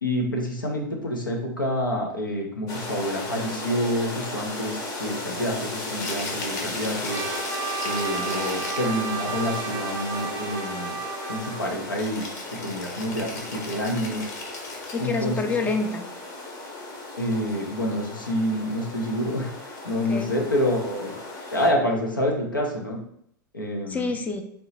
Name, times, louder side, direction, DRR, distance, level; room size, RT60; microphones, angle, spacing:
voice 1, 0.0-7.2 7.8-11.0 11.3-12.2 12.5-14.3 15.0-15.3 17.2-19.5 19.8-21.1 21.5-23.0 23.5-24.1, equal, 85° left, 0 dB, 1.0 m, -27 dB
sound 1, 2.7-21.7, left 2 dB, 35° left, 1.0 m, -36 dB
Rattle (instrument), 5.9-9.0 12.0-15.2, left 2 dB, 55° left, 1.2 m, -38 dB
Trumpet, 7.1-11.8, right 6 dB, 35° right, 0.6 m, -33 dB
voice 2, 14.9-16.0 20.1-20.3 23.9-24.4, left 3 dB, 15° left, 5 dB, 0.6 m, -27 dB
3.7 x 2.8 x 4.1 m, 0.70 s
figure-of-eight pair, 90°, 11 cm